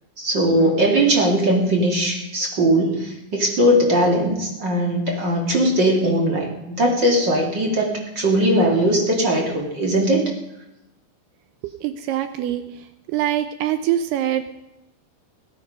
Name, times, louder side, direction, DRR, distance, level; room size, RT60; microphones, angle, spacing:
voice 1, 0.2-10.3, right 1 dB, 35° right, 0 dB, 2.1 m, -19 dB
voice 2, 11.8-12.6 13.1-14.5, right 11 dB, 80° right, 10 dB, 2.5 m, -23 dB
18.0 x 11.0 x 5.3 m, 0.92 s
omnidirectional pair, 5.0 m